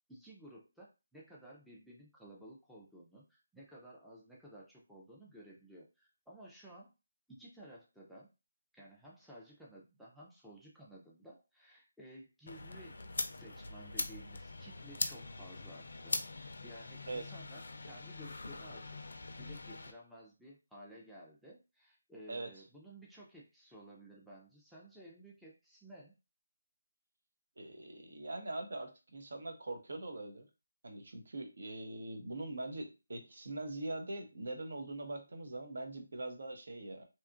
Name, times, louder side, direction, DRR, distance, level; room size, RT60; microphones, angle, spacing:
voice 1, 0.1-6.9 7.3-8.3 8.7-13.0 13.3-19.0 19.4-26.1, right 1 dB, ahead, -5 dB, 0.4 m, -55 dB
sound 1, 12.5-19.9, left 3 dB, 70° left, 0.4 m, -42 dB
voice 2, 27.6-30.5 30.8-37.0, right 2 dB, 65° right, 5 dB, 0.7 m, -42 dB
2.8 x 2.3 x 2.5 m, 0.28 s
figure-of-eight pair, 160°, 0 cm